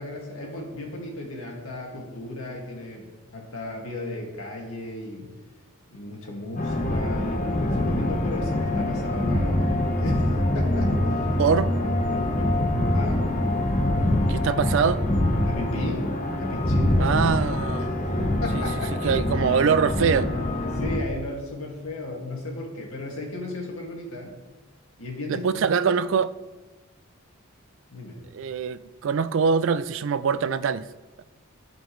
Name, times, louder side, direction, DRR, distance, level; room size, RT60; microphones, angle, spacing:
voice 1, 0.0-5.3 5.9-11.4 12.1-13.3 15.5-16.1 16.4-17.2 18.4-19.0 20.7-24.3 25.0-25.5 27.9-28.2, left 1 dB, 80° left, 2.0 m, -35 dB
sound 1, 6.6-21.0, left 1 dB, 35° left, 1.0 m, -24 dB
voice 2, 11.4-11.7 14.3-15.0 17.0-18.0 18.5-18.7 19.0-20.3 25.3-26.3 28.3-30.9 31.2-31.3, right 6 dB, 60° right, 0.3 m, -23 dB
15.0 x 5.2 x 3.1 m
head